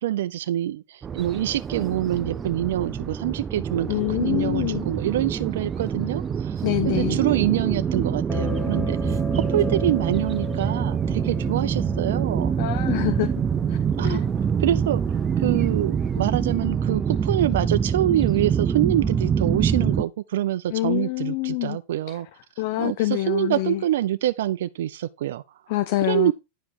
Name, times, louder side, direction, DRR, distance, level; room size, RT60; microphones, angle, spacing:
voice 1, 0.0-9.2 9.5-12.5 14.0-14.2 14.6-15.0 15.4-22.3 22.8-25.4 26.1-26.3, right 12 dB, 75° right, 0.5 m, -26 dB
sound 1, 1.0-20.0, right 7 dB, 25° right, 0.6 m, -25 dB
voice 2, 3.9-4.9 6.6-7.2 12.6-13.3 13.7-13.8 14.0-14.2 20.7-21.8 22.1-22.2 22.6-23.8 25.7-26.3, left 16 dB, 60° left, 0.6 m, -25 dB
sound 2, 8.3-14.8, left 3 dB, 15° left, 1.2 m, -35 dB
10.0 x 5.1 x 4.6 m
hypercardioid pair, 120°, 0 cm